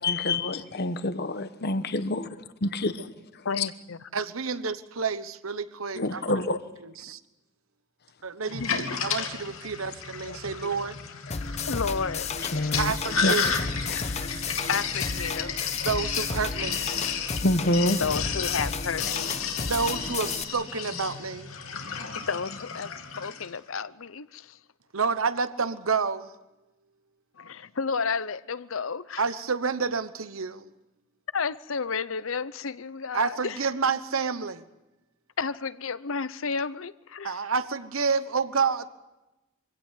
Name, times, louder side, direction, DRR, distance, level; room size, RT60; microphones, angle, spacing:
voice 1, 0.0-2.3 2.6-3.0 3.6-3.7 5.9-6.6 10.3-10.4 11.3-11.4 12.5-12.9 13.2-13.6 13.9-14.1 15.8-15.9 17.4-18.0, left 2 dB, 50° left, 1.2 m, -27 dB
voice 2, 3.4-4.0 8.6-8.7 11.7-12.3 12.6-12.7 14.7-15.7 18.0-19.5 22.3-24.6 27.4-29.2 31.3-33.6 35.4-37.4, left 5 dB, 75° left, 0.8 m, -32 dB
voice 3, 4.1-6.4 7.0-7.2 8.2-10.9 12.8-13.0 13.3-13.6 15.8-16.8 19.7-21.5 24.9-26.3 29.2-30.7 33.1-34.6 37.2-38.9, right 5 dB, 85° right, 1.2 m, -29 dB
Sink (filling or washing), 8.5-23.5, left 6 dB, 90° left, 2.7 m, -33 dB
sound 1, 11.3-20.4, left 4 dB, 35° left, 0.9 m, -33 dB
24.5 x 17.0 x 8.3 m
head